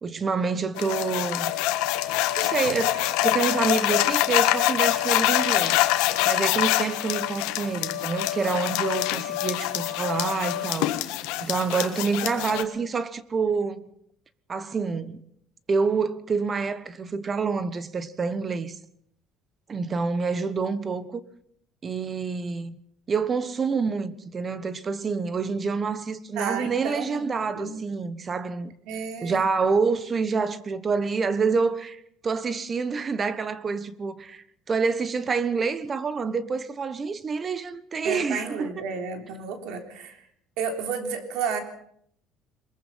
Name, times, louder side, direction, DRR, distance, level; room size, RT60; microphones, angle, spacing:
voice 1, 0.0-1.5 2.4-5.8 6.2-13.8 14.5-15.2 15.7-18.8 19.7-21.2 21.8-22.7 23.1-28.7 29.2-38.7, right 5 dB, 25° right, 1.2 m, -27 dB
sound 1, 0.8-12.6, left 15 dB, 90° left, 1.5 m, -25 dB
voice 2, 26.4-27.3 27.5-27.8 28.9-29.5 38.0-40.3 40.6-41.6, right 6 dB, 75° right, 3.6 m, -32 dB
23.0 x 21.5 x 5.7 m
cardioid pair, 145°, 0 cm